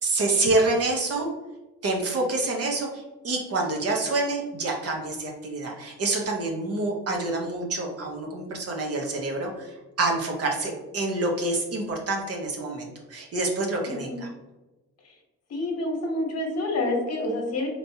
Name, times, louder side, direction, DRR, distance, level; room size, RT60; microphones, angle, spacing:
voice 1, 0.0-1.3 1.8-14.3, right 2 dB, 50° right, 0 dB, 1.0 m, -27 dB
voice 2, 15.5-17.7, left 2 dB, 55° left, 1 dB, 1.1 m, -27 dB
4.3 x 3.2 x 2.7 m, 1.1 s
cardioid pair, 90°, 30 cm